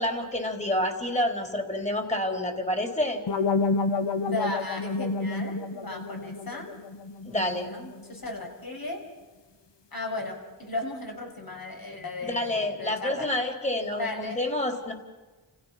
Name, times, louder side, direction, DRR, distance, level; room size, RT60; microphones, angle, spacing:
voice 1, 0.0-3.2 7.2-7.7 12.2-14.9, left 1 dB, 15° left, 4 dB, 4.1 m, -28 dB
sound 1, 3.3-8.2, left 3 dB, 85° left, 1.2 m, -30 dB
voice 2, 4.2-6.8 7.4-9.0 9.9-13.2 14.0-14.4, left 2 dB, 55° left, 2 dB, 6.2 m, -35 dB
29.5 x 16.0 x 6.0 m, 1.2 s
wide cardioid pair, 60°, 42 cm